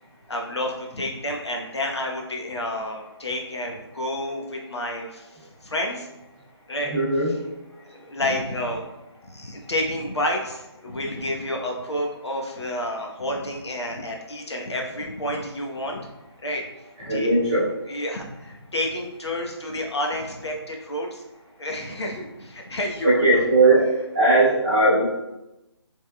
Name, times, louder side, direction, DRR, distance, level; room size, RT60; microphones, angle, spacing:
voice 1, 0.3-5.3 5.6-6.1 6.7-6.9 7.8-8.8 9.2-16.1 16.4-16.6 17.0-17.3 17.9-21.2 21.6-23.4, left 1 dB, 70° left, 0 dB, 1.0 m, -30 dB
voice 2, 6.8-7.3 17.0-17.7 23.0-25.0, right 2 dB, 5° right, -15 dB, 0.7 m, -19 dB
6.0 x 3.5 x 2.2 m, 0.97 s
hypercardioid pair, 180°, 14 cm